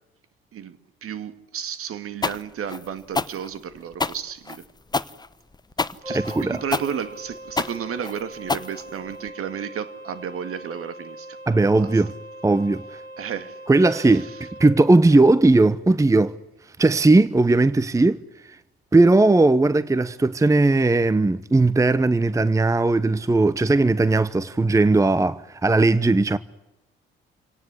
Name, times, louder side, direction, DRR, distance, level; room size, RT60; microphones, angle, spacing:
voice 1, 0.5-4.6 6.1-11.4 11.8-11.9 13.2-13.6 13.9-14.4, right 8 dB, 50° right, 2.1 m, -33 dB
sound 1, 2.2-9.3, left 3 dB, 15° left, 1.1 m, -28 dB
sound 2, 6.0-14.6, right 1 dB, 90° right, 5.1 m, -40 dB
voice 2, 6.3-6.6 11.5-12.1 12.4-12.8 13.7-16.4 16.8-18.2 18.9-26.4, right 2 dB, 10° right, 0.9 m, -18 dB
26.5 x 18.5 x 9.9 m
figure-of-eight pair, 50°, 30 cm